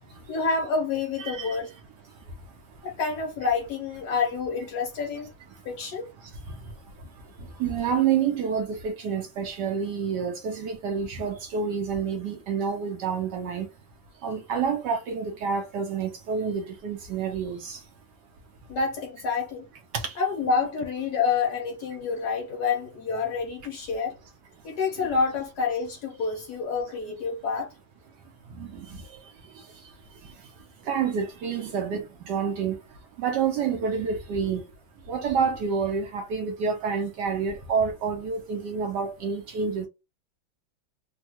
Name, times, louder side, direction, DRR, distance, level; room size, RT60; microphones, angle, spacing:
voice 1, 0.3-1.7 2.8-5.3 5.6-6.1 18.7-19.7 20.2-24.2 24.6-27.7, left 5 dB, 65° left, 1.1 m, -28 dB
voice 2, 1.2-1.6 7.6-13.7 14.2-17.8 20.0-20.1 25.0-25.1 28.6-28.8 30.9-32.8 33.2-34.6 35.1-39.9, right 6 dB, 70° right, 1.1 m, -28 dB
3.5 x 2.2 x 2.8 m
omnidirectional pair, 2.2 m